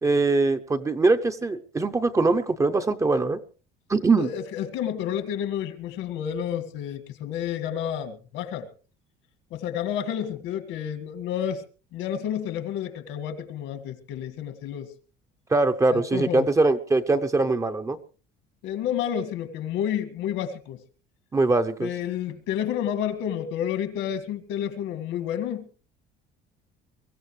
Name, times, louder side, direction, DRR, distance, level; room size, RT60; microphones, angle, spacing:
voice 1, 0.0-3.4 3.9-4.3 15.5-18.0 21.3-21.9, right 3 dB, 15° right, 0.7 m, -22 dB
voice 2, 4.2-8.7 9.5-11.6 11.9-14.9 15.8-16.5 18.6-20.8 21.8-25.8, left 9 dB, 75° left, 1.9 m, -30 dB
23.5 x 15.0 x 3.2 m
cardioid pair, 165°, 20 cm